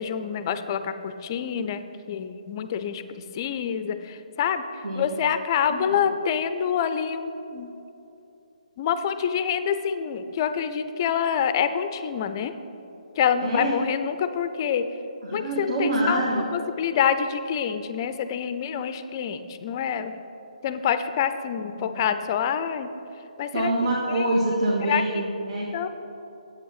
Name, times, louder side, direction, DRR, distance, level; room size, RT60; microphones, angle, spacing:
voice 1, 0.0-3.0 3.3-4.6 4.9-7.7 8.8-12.5 13.2-14.9 15.3-16.2 16.5-20.1 20.6-22.9 23.4-23.7 24.1-24.3 24.8-25.0 25.7-25.9, left 8 dB, 30° left, 10 dB, 0.4 m, -26 dB
voice 2, 4.8-5.2 5.7-6.0 13.4-13.7 15.2-16.4 21.8-22.1 23.5-25.7, right 1 dB, 60° right, -5 dB, 1.9 m, -26 dB
9.2 x 8.3 x 4.0 m, 2.9 s
figure-of-eight pair, 145°, 4 cm